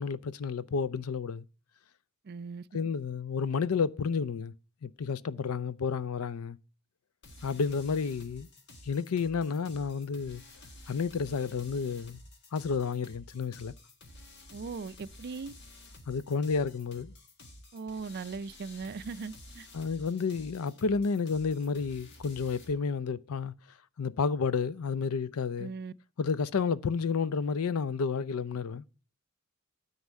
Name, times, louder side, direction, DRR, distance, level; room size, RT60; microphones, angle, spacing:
voice 1, 0.0-1.4 2.7-4.5 4.8-6.6 7.4-8.5 8.8-10.4 10.9-12.2 12.5-13.7 16.1-17.1 19.7-23.5 24.0-25.7 26.2-28.8, left 5 dB, 75° left, 0.5 m, -31 dB
voice 2, 2.2-2.7 14.5-15.5 17.7-19.7 25.6-25.9, right 4 dB, 50° right, 0.4 m, -39 dB
sound 1, 7.2-22.7, left 1 dB, 55° left, 1.6 m, -52 dB
9.6 x 5.5 x 8.2 m
head